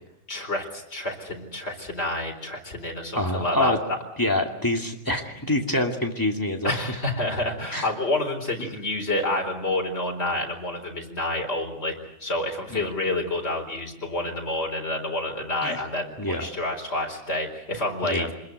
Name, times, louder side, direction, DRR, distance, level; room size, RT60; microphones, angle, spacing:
voice 1, 0.3-4.0 6.6-18.3, left 2 dB, 60° left, 1 dB, 4.6 m, -28 dB
voice 2, 3.1-3.8 4.2-6.7 7.7-7.9 8.6-8.7 12.7-12.9 15.6-15.8 16.2-16.5 18.0-18.3, left 1 dB, 15° left, 2 dB, 2.5 m, -26 dB
26.0 x 21.0 x 8.2 m, 0.88 s
omnidirectional pair, 1.3 m